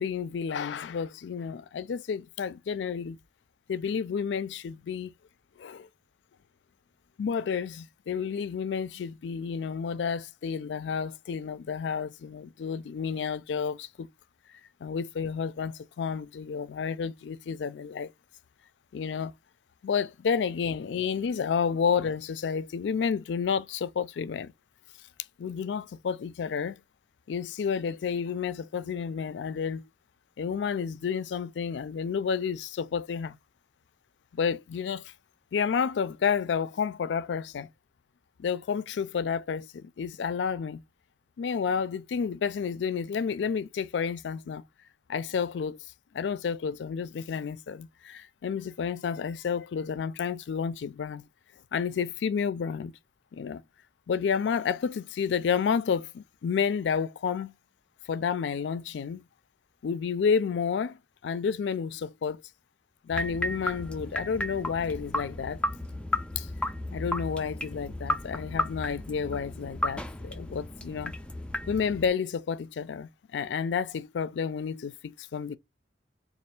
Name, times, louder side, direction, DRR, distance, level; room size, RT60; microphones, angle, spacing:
voice 1, 0.0-3.2 3.7-5.1 5.6-5.9 7.2-14.1 14.8-18.1 18.9-19.3 19.8-24.5 25.4-26.8 27.3-29.8 30.4-33.4 34.3-35.1 35.5-37.7 38.4-40.8 41.4-44.6 45.1-45.8 46.1-51.2 51.7-52.9 53.3-53.6 54.1-57.5 58.1-59.2 59.8-62.4 63.0-65.6 66.4-66.5 66.9-71.1 71.7-75.6, left 6 dB, 85° left, 0.4 m, -30 dB
sound 1, 63.1-72.1, left 1 dB, 5° left, 0.4 m, -34 dB
3.3 x 2.4 x 4.2 m
head